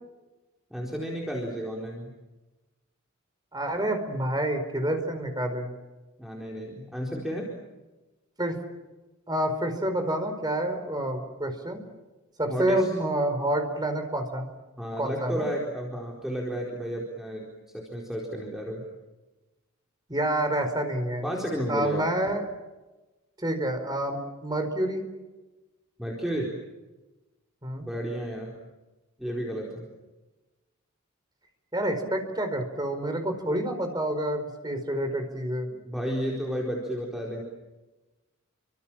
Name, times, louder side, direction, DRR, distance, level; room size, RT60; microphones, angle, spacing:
voice 1, 0.7-2.1 6.2-7.5 12.5-12.9 14.8-17.5 17.7-18.8 21.2-22.0 26.0-26.6 27.8-28.6 29.2-29.9 32.0-32.1 35.8-37.4, equal, ahead, -2 dB, 4.4 m, -32 dB
voice 2, 3.5-5.7 8.4-8.6 9.3-11.8 12.4-14.5 15.0-15.5 20.1-21.2 21.7-22.5 23.4-25.0 27.6-27.8 31.7-35.7, right 1 dB, 20° right, 6 dB, 4.7 m, -28 dB
30.0 x 25.5 x 7.5 m, 1.1 s
head